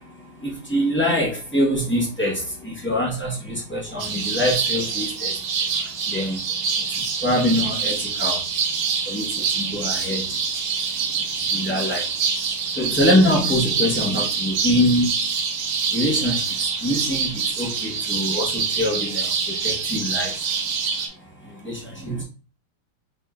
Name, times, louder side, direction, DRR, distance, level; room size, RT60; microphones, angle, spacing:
voice 1, 0.4-5.3 6.1-6.4 7.2-8.4 9.1-10.2 11.5-12.0 12.8-15.1 15.9-16.4 16.8-19.3 19.6-20.3 21.6-22.2, left 1 dB, 15° left, -4 dB, 0.4 m, -23 dB
sound 1, 4.0-21.1, right 6 dB, 75° right, 1.7 m, -25 dB
4.8 x 3.7 x 2.4 m, 0.36 s
omnidirectional pair, 2.4 m